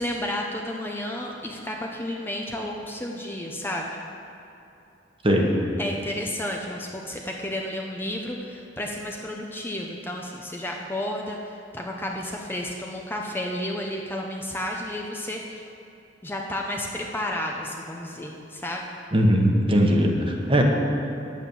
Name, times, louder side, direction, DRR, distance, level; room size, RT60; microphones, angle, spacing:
voice 1, 0.0-3.9 5.8-15.6 16.2-18.8, left 1 dB, 10° left, 0 dB, 0.8 m, -32 dB
voice 2, 19.1-20.6, equal, 30° right, 1 dB, 1.3 m, -20 dB
9.8 x 8.5 x 7.2 m, 2.7 s
head